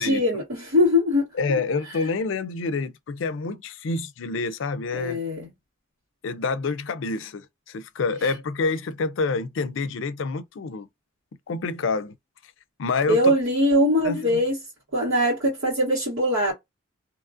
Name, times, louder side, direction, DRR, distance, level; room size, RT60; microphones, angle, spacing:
voice 1, 0.0-1.3 4.9-5.5 13.1-14.6 14.9-16.5, left 1 dB, 85° right, 1.6 m, -21 dB
voice 2, 1.3-5.2 6.2-10.9 11.5-12.1 12.8-13.3 14.0-14.4, left 4 dB, 75° left, 0.4 m, -27 dB
2.8 x 2.5 x 2.4 m
head